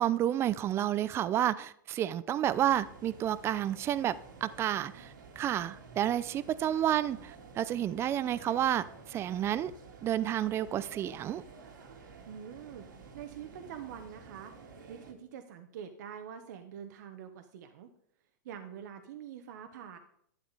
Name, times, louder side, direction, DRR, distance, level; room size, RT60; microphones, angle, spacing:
voice 1, 0.0-4.1 4.4-5.1 5.4-7.3 7.6-9.7 10.0-11.4, right 11 dB, 25° right, 0.5 m, -30 dB
sound 1, 2.4-15.1, right 5 dB, 85° right, 2.3 m, -51 dB
voice 2, 12.3-12.9 13.1-14.5 14.9-17.9 18.4-20.0, right 8 dB, 65° right, 1.1 m, -45 dB
11.5 x 10.0 x 4.1 m
hypercardioid pair, 135°, 10 cm